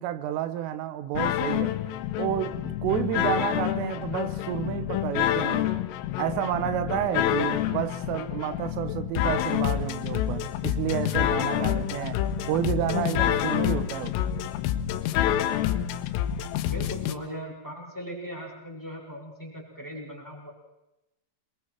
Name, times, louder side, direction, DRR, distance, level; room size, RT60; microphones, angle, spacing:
voice 1, 0.0-1.8 2.2-5.7 6.2-12.2 12.5-14.3, right 11 dB, 85° right, 3.5 m, -30 dB
sound 1, 1.2-17.1, left 12 dB, 85° left, 3.5 m, -28 dB
voice 2, 16.6-20.5, equal, 5° left, 4.8 m, -39 dB
27.5 x 23.0 x 4.5 m
omnidirectional pair, 5.7 m